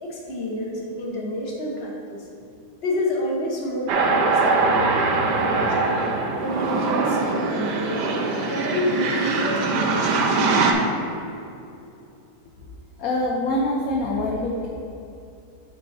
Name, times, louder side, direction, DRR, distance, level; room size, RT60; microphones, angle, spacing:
voice 1, 0.0-2.3 2.8-6.0 6.4-8.1 8.4-10.9, left 1 dB, 40° left, -2 dB, 1.2 m, -29 dB
sound 1, 3.9-10.7, right 3 dB, 85° right, 1.3 m, -22 dB
voice 2, 13.0-14.7, left 1 dB, 65° left, -1 dB, 1.1 m, -25 dB
8.8 x 4.3 x 4.2 m, 2.7 s
omnidirectional pair, 1.8 m